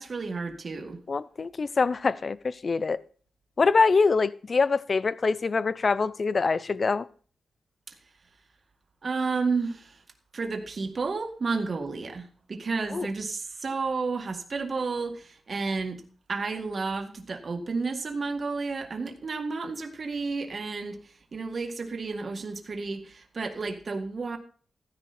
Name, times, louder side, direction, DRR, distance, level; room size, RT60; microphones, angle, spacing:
voice 1, 0.0-1.0 9.0-10.0 10.3-16.0 16.3-21.0 21.3-24.4, right 4 dB, 45° right, 2.1 m, -31 dB
voice 2, 1.1-3.0 3.6-7.1 12.9-13.1, left 4 dB, 45° left, 0.6 m, -24 dB
14.5 x 10.5 x 4.4 m
cardioid pair, 95°, 0 cm